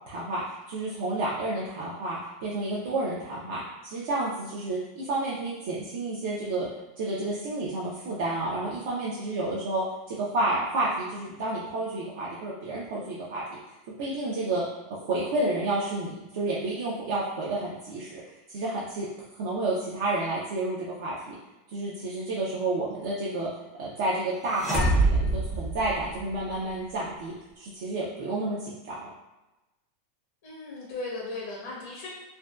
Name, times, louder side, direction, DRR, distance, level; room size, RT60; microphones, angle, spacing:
voice 1, 0.1-0.4 0.7-6.7 7.0-13.6 14.0-14.6 14.9-18.2 18.5-19.1 19.4-21.3 21.7-23.5 23.8-29.0, right 2 dB, 60° right, -6 dB, 0.5 m, -30 dB
sound 1, 24.5-26.5, right 2 dB, 5° right, 0.5 m, -25 dB
voice 2, 30.4-32.1, left 2 dB, 70° left, -3 dB, 0.6 m, -37 dB
2.5 x 2.1 x 2.2 m, 1.0 s
supercardioid pair, 150°, 0 cm